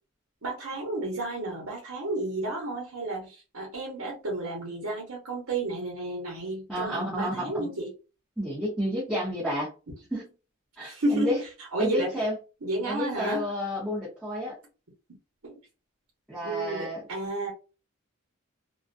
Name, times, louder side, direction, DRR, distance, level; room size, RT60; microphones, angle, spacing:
voice 1, 0.4-7.9 10.8-11.3 11.7-12.2 12.6-13.4 15.4-15.6 16.4-17.5, right 2 dB, 75° right, -2 dB, 1.0 m, -31 dB
voice 2, 6.7-7.7 8.4-9.7 10.1-10.2 10.8-11.4 11.8-12.3 12.9-14.5 16.3-17.0, equal, 5° right, -9 dB, 0.8 m, -30 dB
2.4 x 2.2 x 2.5 m, 0.31 s
head